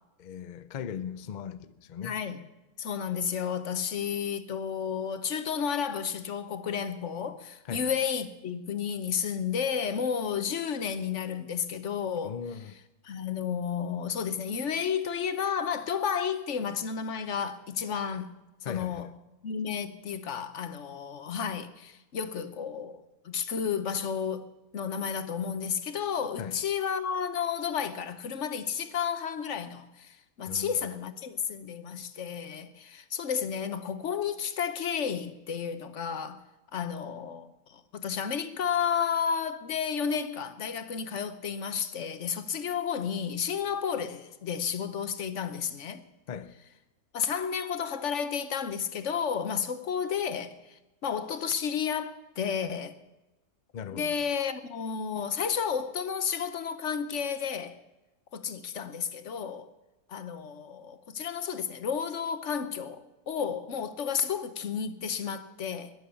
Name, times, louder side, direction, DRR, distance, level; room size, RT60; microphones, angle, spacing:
voice 1, 0.2-2.2 7.6-7.9 12.2-12.8 18.6-19.1 26.4-26.6 30.5-30.9 46.3-46.6 53.7-54.3, left 8 dB, 75° left, 0.4 m, -39 dB
voice 2, 2.0-2.4 2.8-12.4 13.0-18.3 18.6-19.1 19.4-36.4 36.7-46.0 47.1-53.0 53.9-57.8 58.3-59.7 60.1-65.9, left 7 dB, 55° left, 1.2 m, -32 dB
21.5 x 7.8 x 7.0 m
omnidirectional pair, 1.6 m